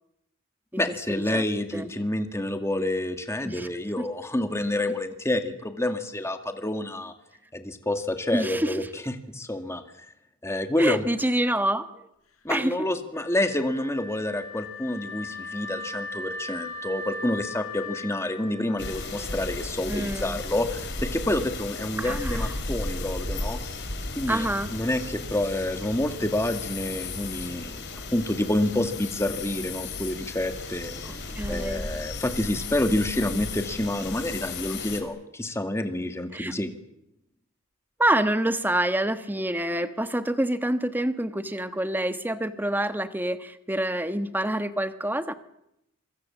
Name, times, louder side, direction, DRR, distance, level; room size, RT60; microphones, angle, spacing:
voice 1, 0.8-7.1 7.5-9.8 10.4-11.0 12.4-23.6 24.2-27.8 28.1-36.7, left 1 dB, 15° left, 6 dB, 2.1 m, -28 dB
voice 2, 8.3-8.9 10.8-11.9 12.5-12.8 19.9-20.4 22.0-22.5 24.3-24.7 31.0-31.9 36.3-36.5 38.0-45.3, right 1 dB, 10° right, 10 dB, 1.3 m, -27 dB
Wind instrument woodwind instrument, 13.1-20.1, left 3 dB, 85° left, 4.3 m, -39 dB
sound 1, 18.8-35.0, left 3 dB, 55° left, 4.7 m, -35 dB
26.5 x 25.0 x 7.3 m, 0.82 s
head